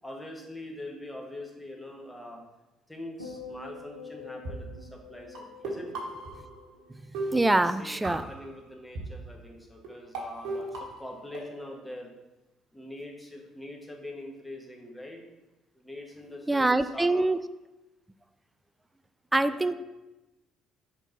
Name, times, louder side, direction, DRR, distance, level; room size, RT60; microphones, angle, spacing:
voice 1, 0.0-2.4 2.9-6.0 7.6-12.1 12.7-15.2 15.7-17.3 19.4-19.7, left 1 dB, 10° left, 0 dB, 1.4 m, -43 dB
sound 1, 3.2-7.6 7.9-8.3, left 4 dB, 90° left, 0.6 m, -47 dB
sound 2, 4.4-4.5 5.3-6.9 7.1-8.5 8.9-9.0 9.8-9.9 10.1-11.8, right 2 dB, 65° right, 1.3 m, -37 dB
voice 2, 7.3-8.2 16.5-17.4 19.3-19.7, right 2 dB, 15° right, 12 dB, 0.4 m, -24 dB
4.5 x 4.3 x 5.3 m, 1.0 s
figure-of-eight pair, 50°, 0 cm